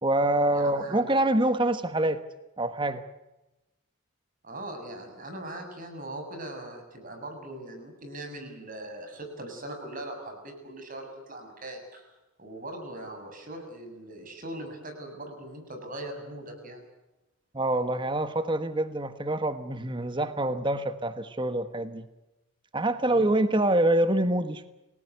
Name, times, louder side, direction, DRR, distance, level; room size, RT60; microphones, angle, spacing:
voice 1, 0.0-2.2 2.6-3.0 17.5-22.1 22.7-24.7, right 1 dB, 25° right, 11 dB, 1.3 m, -26 dB
voice 2, 0.5-1.0 4.4-12.1 12.4-16.8 23.0-23.3, right 1 dB, 40° right, 5 dB, 7.3 m, -40 dB
29.5 x 18.5 x 8.1 m, 0.98 s
head